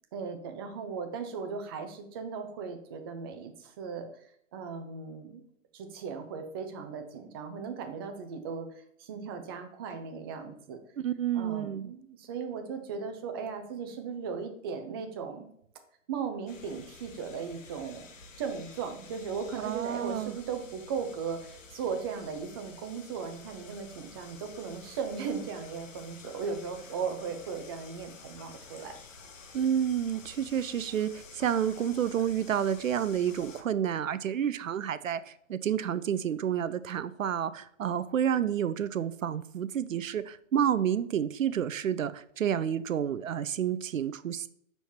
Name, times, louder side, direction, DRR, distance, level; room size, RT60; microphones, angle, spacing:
voice 1, 0.1-4.1 4.5-5.4 5.7-10.8 11.3-15.5 16.1-18.1 18.4-29.0, right 6 dB, 20° right, 5 dB, 0.4 m, -37 dB
voice 2, 11.0-11.9 19.6-20.4 29.5-44.5, right 9 dB, 75° right, 15 dB, 0.5 m, -30 dB
sound 1, 16.5-33.6, left 4 dB, 70° left, 1.1 m, -50 dB
5.6 x 4.5 x 4.2 m, 0.68 s
figure-of-eight pair, 120°, 40 cm